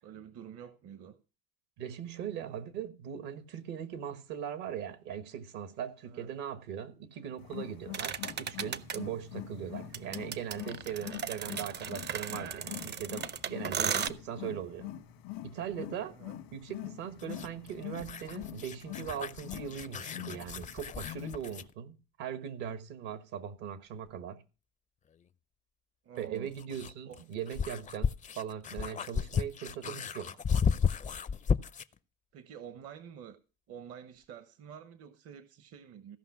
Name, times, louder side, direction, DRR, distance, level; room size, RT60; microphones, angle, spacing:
voice 1, 0.0-1.2 6.0-6.3 16.1-16.4 26.0-26.5 27.0-27.2 32.3-33.4 33.7-36.2, right 8 dB, 55° right, 1.0 m, -48 dB
voice 2, 1.8-14.9 15.4-16.1 16.5-24.4 26.2-30.3, right 9 dB, 75° right, 1.4 m, -40 dB
Wild animals, 7.4-21.7, left 13 dB, 80° left, 1.4 m, -45 dB
sound 1, 7.9-9.0 9.9-14.1, right 7 dB, 35° right, 0.6 m, -35 dB
sound 2, 17.2-21.7 24.1-24.2 26.2-32.0, left 6 dB, 25° left, 0.5 m, -34 dB
15.5 x 5.6 x 5.9 m
hypercardioid pair, 75°, 30 cm